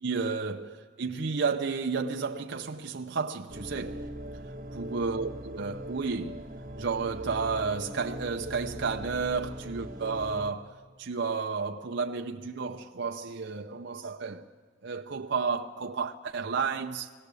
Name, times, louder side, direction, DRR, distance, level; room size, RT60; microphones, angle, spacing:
voice 1, 0.0-4.1 4.7-6.4 6.8-14.4 14.8-17.1, right 5 dB, 55° right, 0.6 m, -32 dB
sound 1, 3.5-10.5, equal, 40° right, 1.3 m, -41 dB
20.0 x 16.0 x 8.2 m
head